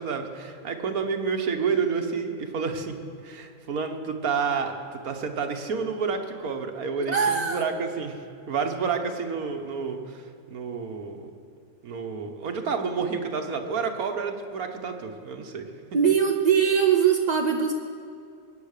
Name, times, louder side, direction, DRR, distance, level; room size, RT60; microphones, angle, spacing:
voice 1, 0.0-11.3 11.8-15.7, right 5 dB, 85° right, 5 dB, 1.6 m, -30 dB
voice 2, 7.1-7.6 15.9-17.7, right 7 dB, 45° right, 3 dB, 0.5 m, -21 dB
22.0 x 9.0 x 6.6 m, 2.5 s
omnidirectional pair, 1.5 m